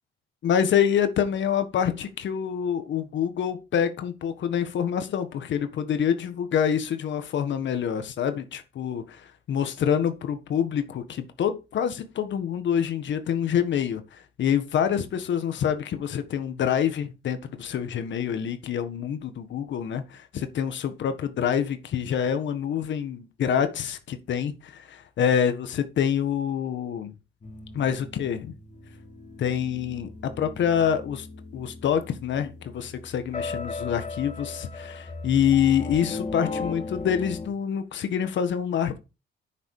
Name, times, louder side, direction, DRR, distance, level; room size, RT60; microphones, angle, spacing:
voice 1, 0.4-27.1 27.7-28.6 29.4-31.3 31.5-39.0, left 8 dB, 70° left, 1.6 m, -26 dB
sound 1, 27.4-37.5, left 3 dB, 35° left, 3.9 m, -37 dB
9.3 x 7.1 x 4.9 m
cardioid pair, 90°, 20 cm